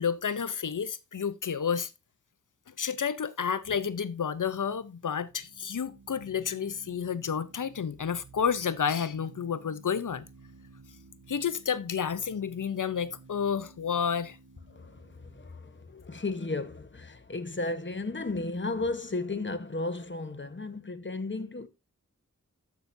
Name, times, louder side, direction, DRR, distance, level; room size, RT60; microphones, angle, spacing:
voice 1, 0.0-1.9 2.7-10.3 11.3-14.4, left 7 dB, 80° left, 0.6 m, -30 dB
sound 1, 4.2-17.0, right 4 dB, 85° right, 1.2 m, -55 dB
voice 2, 14.7-21.7, left 3 dB, 40° left, 1.1 m, -34 dB
13.0 x 5.9 x 2.6 m
wide cardioid pair, 55°, 31 cm